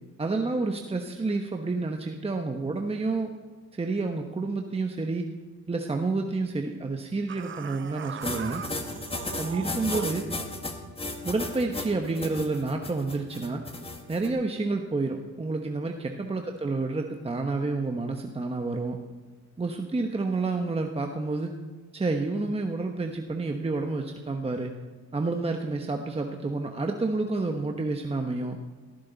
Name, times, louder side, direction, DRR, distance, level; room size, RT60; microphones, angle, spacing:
voice 1, 0.2-3.3 3.7-5.3 5.7-8.6 9.4-10.3 11.2-13.6 14.1-19.0 19.6-21.6 21.9-24.7 25.1-28.6, right 3 dB, 20° right, 3 dB, 1.1 m, -29 dB
sound 1, 7.3-10.3, right 9 dB, 40° right, 0.7 m, -39 dB
sound 2, 8.2-14.3, left 2 dB, 20° left, 1.9 m, -34 dB
18.5 x 14.5 x 4.0 m, 1.3 s
cardioid pair, 90°, 30 cm